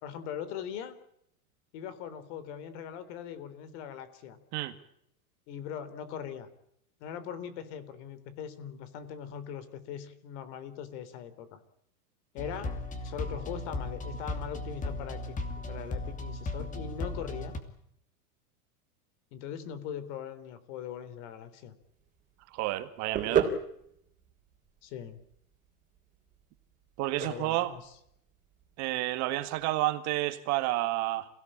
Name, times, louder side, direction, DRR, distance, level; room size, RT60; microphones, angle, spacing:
voice 1, 0.0-1.0 1.7-4.4 5.5-6.5 7.0-11.6 12.3-12.7 13.0-17.5 19.3-21.7 24.8-25.2 27.2-27.8, left 8 dB, 50° left, 14 dB, 3.8 m, -41 dB
sound 1, 12.4-17.6, left 2 dB, 15° left, 2.8 m, -36 dB
sound 2, 21.8-29.7, right 7 dB, 15° right, 3.8 m, -36 dB
voice 2, 22.5-23.5 27.0-27.7 28.8-31.3, right 17 dB, 35° right, 10 dB, 1.9 m, -30 dB
29.0 x 17.5 x 8.9 m, 0.74 s
supercardioid pair, 155°, 45 cm